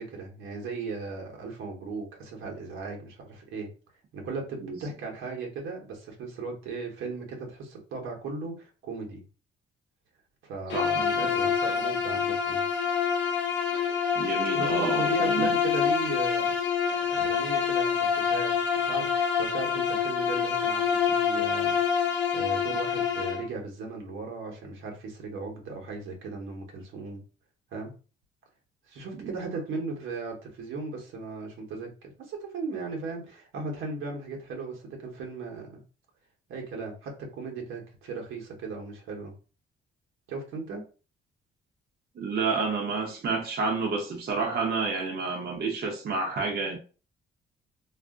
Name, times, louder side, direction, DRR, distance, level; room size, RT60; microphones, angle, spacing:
voice 1, 0.0-3.7 4.1-9.2 10.4-12.7 14.5-16.5 17.0-27.2 27.7-27.9 28.9-35.8 36.5-39.3 40.3-40.9, right 4 dB, 80° right, 1.0 m, -37 dB
Bowed string instrument, 10.7-23.5, left 7 dB, 70° left, 0.6 m, -26 dB
voice 2, 10.7-11.3 14.2-15.5 29.1-29.3 42.2-46.8, right 4 dB, 55° right, 0.7 m, -30 dB
2.4 x 2.0 x 3.6 m
cardioid pair, 90°, 20 cm